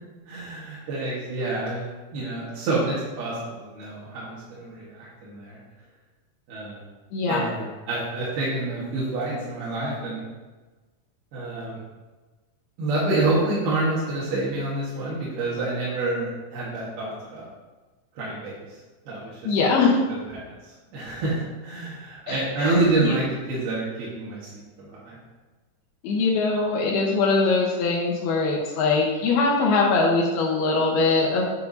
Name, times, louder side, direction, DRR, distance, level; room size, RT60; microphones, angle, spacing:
voice 1, 0.3-1.9 2.1-5.6 6.5-6.8 7.3-10.2 11.3-11.8 12.8-17.5 18.2-18.8 19.1-19.7 20.1-25.2, right 2 dB, 70° right, -7 dB, 3.4 m, -28 dB
voice 2, 7.1-7.4 19.4-20.0 22.3-23.1 26.0-31.4, left 3 dB, 75° left, -3 dB, 3.0 m, -22 dB
9.2 x 8.1 x 2.8 m, 1.2 s
omnidirectional pair, 4.6 m